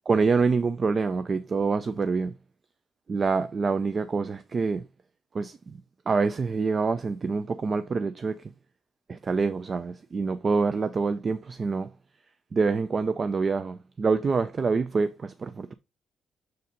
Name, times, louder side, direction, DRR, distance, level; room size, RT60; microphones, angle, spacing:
voice 1, 0.1-2.3 3.1-4.8 5.3-5.8 6.1-8.4 9.1-11.9 12.5-15.7, right 4 dB, 40° right, 0.4 m, -26 dB
6.4 x 4.1 x 3.9 m
cardioid pair, 90°, 0 cm